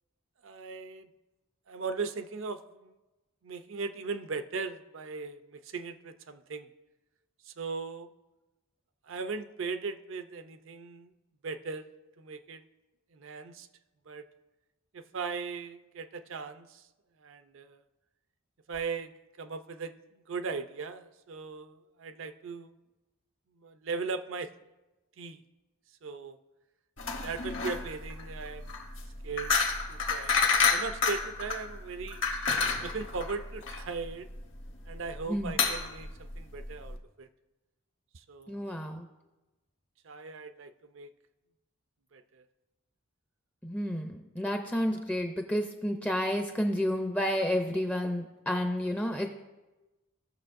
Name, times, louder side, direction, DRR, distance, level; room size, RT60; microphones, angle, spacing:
voice 1, 0.4-1.1 1.7-2.9 3.4-6.7 7.4-8.1 9.1-11.1 11.4-11.9 12.2-12.6 13.1-13.7 14.1-14.2 14.9-16.8 17.2-17.8 18.7-19.1 19.4-19.9 20.3-22.7 23.6-24.5 25.2-25.4 26.0-26.4 27.2-28.7 29.2-29.5 29.9-30.3 30.7-32.2 32.8-34.3 34.9-37.3 38.3-38.8 40.0-41.1 42.1-42.4 48.5-48.7, right 4 dB, 65° right, 10 dB, 0.5 m, -38 dB
sound 1, 27.0-37.0, left 5 dB, 60° left, 1.1 m, -30 dB
voice 2, 38.5-39.1 43.6-49.3, equal, 5° left, 4 dB, 0.5 m, -30 dB
17.0 x 6.5 x 2.6 m, 1.1 s
head